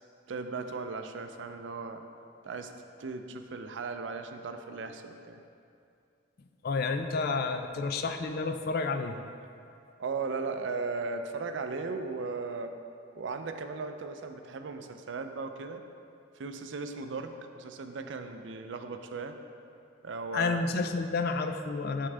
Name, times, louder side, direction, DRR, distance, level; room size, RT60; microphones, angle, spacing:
voice 1, 0.3-2.0 2.4-2.7 3.0-5.4 10.0-12.7 13.1-15.8 16.4-19.4 20.0-20.6, right 4 dB, 70° right, 7 dB, 0.4 m, -37 dB
voice 2, 6.6-9.1 20.3-22.1, left 4 dB, 55° left, 7 dB, 0.4 m, -30 dB
10.5 x 3.7 x 3.3 m, 2.5 s
head